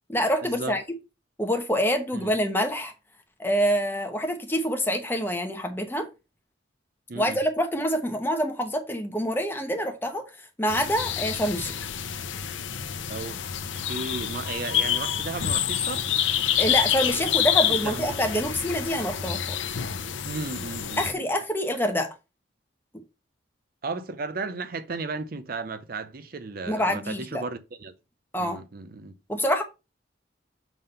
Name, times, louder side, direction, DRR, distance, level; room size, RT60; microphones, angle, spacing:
voice 1, 0.1-0.8 1.4-2.9 3.4-6.1 7.1-10.2 10.6-11.8 16.6-19.8 21.0-22.1 26.7-27.4 28.3-28.6 29.3-29.6, equal, 10° left, 1.2 m, -26 dB
sound 1, 10.7-21.1, left 9 dB, 85° left, 0.6 m, -28 dB
voice 2, 13.1-13.4 13.7-16.1 17.7-18.1 20.2-21.2 23.8-27.9 28.4-29.1, right 3 dB, 50° right, 0.6 m, -34 dB
7.0 x 3.8 x 5.4 m
head